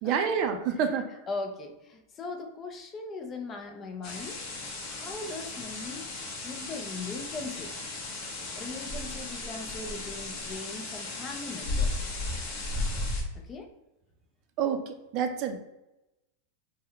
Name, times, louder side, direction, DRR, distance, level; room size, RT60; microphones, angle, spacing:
voice 1, 0.0-1.1 14.6-15.6, right 7 dB, 45° right, 6 dB, 0.4 m, -28 dB
voice 2, 1.3-4.4 4.9-6.1 6.4-7.7 8.6-12.1 13.4-13.7, left 3 dB, 25° left, 4 dB, 0.4 m, -39 dB
sound 1, 4.0-13.2, left 2 dB, 45° left, 0.9 m, -35 dB
3.6 x 2.1 x 3.3 m, 0.95 s
supercardioid pair, 140°, 0 cm